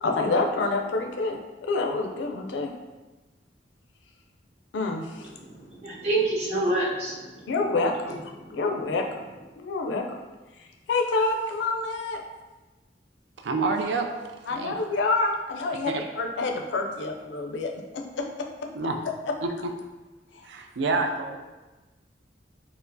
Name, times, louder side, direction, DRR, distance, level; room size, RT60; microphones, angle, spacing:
voice 1, 0.0-2.7 4.7-5.3 7.5-8.2 8.5-9.3 9.6-10.0 10.9-12.2 14.5-15.9 16.2-18.7, left 3 dB, 85° left, 3 dB, 0.4 m, -27 dB
voice 2, 5.4-7.5 8.4-8.6, right 2 dB, 35° right, -5 dB, 0.7 m, -28 dB
voice 3, 13.4-14.1 14.5-14.8 15.8-16.1 18.7-19.0 19.4-19.5 20.4-21.4, right 3 dB, 80° right, 4 dB, 0.4 m, -28 dB
4.3 x 2.0 x 2.6 m, 1.2 s
head